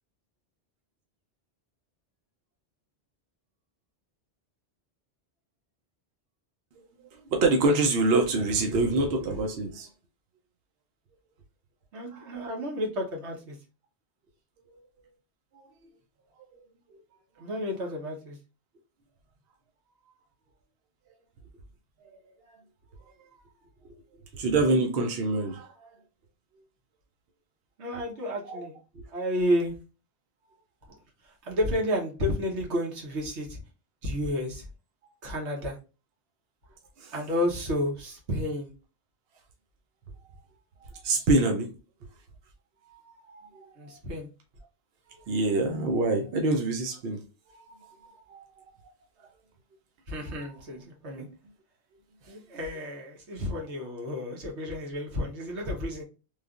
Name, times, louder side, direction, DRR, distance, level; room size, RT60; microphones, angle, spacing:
voice 1, 7.3-9.9 15.5-15.6 22.0-22.2 23.8-24.0 24.3-25.7 28.5-28.6 29.0-29.1 37.0-37.1 41.0-41.7 42.9-43.0 43.3-43.7 45.3-47.2 47.5-47.9 48.3-48.4, right 2 dB, 65° right, 0.8 m, -26 dB
voice 2, 11.9-13.6 17.4-18.4 27.8-28.8 29.1-29.7 31.2-33.6 34.0-34.7 35.2-35.8 37.1-38.7 43.8-44.3 50.1-51.3 52.3-56.0, left 1 dB, 90° right, 1.3 m, -31 dB
3.2 x 2.4 x 2.3 m
omnidirectional pair, 1.1 m